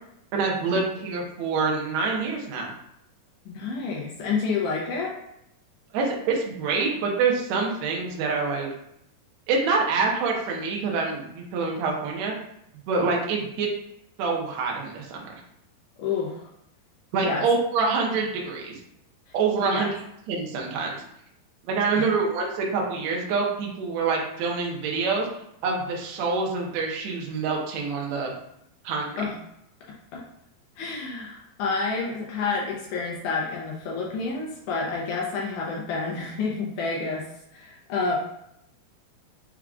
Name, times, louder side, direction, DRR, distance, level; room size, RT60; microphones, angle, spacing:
voice 1, 0.3-2.7 5.9-8.7 9.5-12.3 12.9-13.7 14.2-15.4 17.1-18.8 19.3-19.9 20.3-20.9 21.7-25.3 25.6-28.3 28.8-29.2, right 4 dB, 90° right, -1 dB, 1.5 m, -26 dB
voice 2, 3.5-5.1 16.0-16.5 17.2-17.4 19.6-19.9 21.9-22.0 29.2-29.4 30.1-30.2 30.8-37.3 37.5-38.2, left 4 dB, 80° left, -3 dB, 1.8 m, -29 dB
6.0 x 3.6 x 2.4 m, 0.77 s
omnidirectional pair, 4.4 m